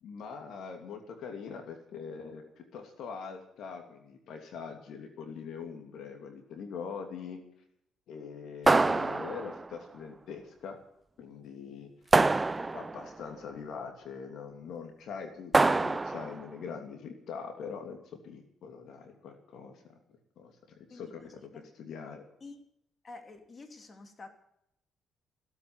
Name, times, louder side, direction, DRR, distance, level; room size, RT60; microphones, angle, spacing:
voice 1, 0.0-7.4 8.1-10.8 11.2-11.9 12.4-19.7 20.4-22.2, left 6 dB, 75° left, 5 dB, 2.8 m, -43 dB
sound 1, 8.7-9.7 12.1-13.1 15.5-16.4, right 3 dB, 20° right, 0.5 m, -25 dB
voice 2, 20.9-21.6 22.4-22.6 23.0-24.3, left 3 dB, 35° left, 6 dB, 3.1 m, -49 dB
17.0 x 8.6 x 9.6 m, 0.76 s
cardioid pair, 90°, 0 cm